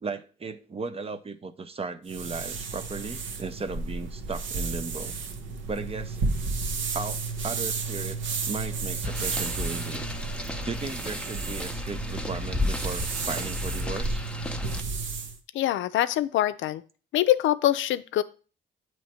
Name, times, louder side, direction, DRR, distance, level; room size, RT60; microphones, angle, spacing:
voice 1, 0.0-5.1 5.7-6.2 6.9-8.2 8.5-10.1 10.7-14.2, right 4 dB, 30° right, 0.6 m, -36 dB
sound 1, 2.1-15.4, right 4 dB, 70° right, 0.9 m, -32 dB
sound 2, 6.6-11.8, right 3 dB, 50° right, 1.1 m, -48 dB
sound 3, 9.0-14.8, left 2 dB, 5° left, 0.7 m, -34 dB
voice 2, 15.5-16.8 17.1-18.2, left 13 dB, 75° left, 0.5 m, -24 dB
8.2 x 3.1 x 4.3 m
cardioid pair, 90°, 20 cm